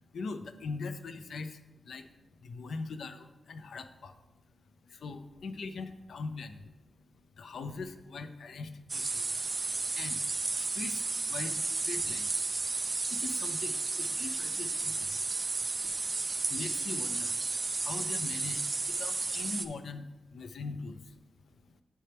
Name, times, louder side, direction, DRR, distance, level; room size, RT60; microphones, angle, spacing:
voice 1, 0.0-4.2 4.8-6.7 7.1-10.2 10.5-12.8 13.1-15.3 15.8-15.9 16.3-17.4 17.8-21.2 21.5-21.8, left 4 dB, 70° left, 9 dB, 0.5 m, -42 dB
sound 1, 8.9-19.7, right 3 dB, 30° right, 0.3 m, -33 dB
9.8 x 4.3 x 3.4 m, 1.0 s
wide cardioid pair, 165°, 0 cm